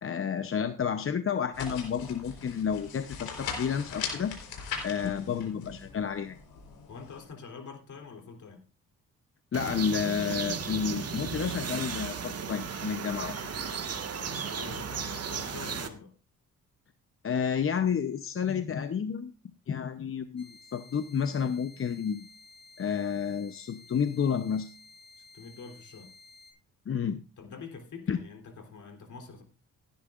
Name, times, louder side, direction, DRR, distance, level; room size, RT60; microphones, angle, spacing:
voice 1, 0.0-4.3 4.8-6.4 9.5-13.3 17.2-19.3 19.7-22.3 22.8-24.7 26.9-27.2 28.1-28.2, left 7 dB, 40° left, 9 dB, 0.8 m, -30 dB
sound 1, 1.5-7.3, left 6 dB, 85° left, 4.1 m, -40 dB
voice 2, 6.9-8.6 14.3-16.1 25.3-26.1 27.4-29.4, left 5 dB, 55° left, 3 dB, 3.3 m, -46 dB
sound 2, 9.5-15.9, right 6 dB, 45° right, 1.6 m, -35 dB
sound 3, 20.4-26.5, left 3 dB, 15° left, 5.0 m, -54 dB
17.0 x 10.5 x 2.5 m, 0.35 s
cardioid pair, 85°, 35 cm